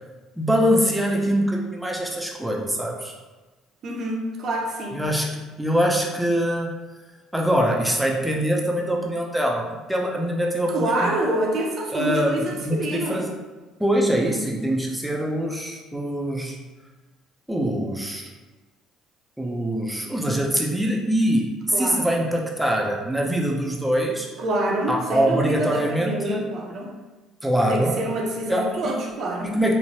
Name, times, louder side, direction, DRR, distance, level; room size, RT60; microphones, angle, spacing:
voice 1, 0.4-3.1 4.9-6.7 7.3-11.1 11.9-13.3 13.8-16.6 17.5-18.3 19.4-21.5 21.8-24.3 24.9-26.5 27.4-28.0 28.5-28.9 29.4-29.7, equal, 5° right, -1 dB, 0.4 m, -23 dB
voice 2, 3.8-5.1 10.7-13.3 21.7-22.2 24.4-27.0 27.7-29.6, right 1 dB, 50° right, 0 dB, 0.6 m, -27 dB
3.0 x 2.1 x 2.7 m, 1.2 s
cardioid pair, 110°, 0 cm